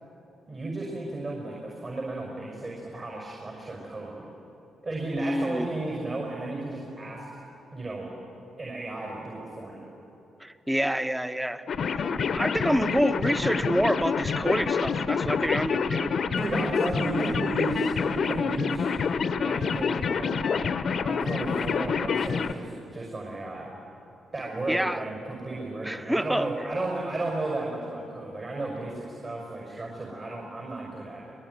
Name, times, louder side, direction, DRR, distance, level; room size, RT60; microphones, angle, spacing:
voice 1, 0.5-4.3 4.8-7.3 7.7-8.1 8.6-9.9 16.4-18.9 19.4-20.6 21.0-23.7 24.3-31.3, right 2 dB, 40° right, -1 dB, 6.0 m, -34 dB
voice 2, 5.1-5.7 10.4-16.1 24.7-25.0 25.8-26.5, equal, 10° right, 10 dB, 1.3 m, -27 dB
sound 1, 11.7-22.5, left 6 dB, 60° left, 1.0 m, -27 dB
22.5 x 20.5 x 9.6 m, 3.0 s
hypercardioid pair, 45°, 0 cm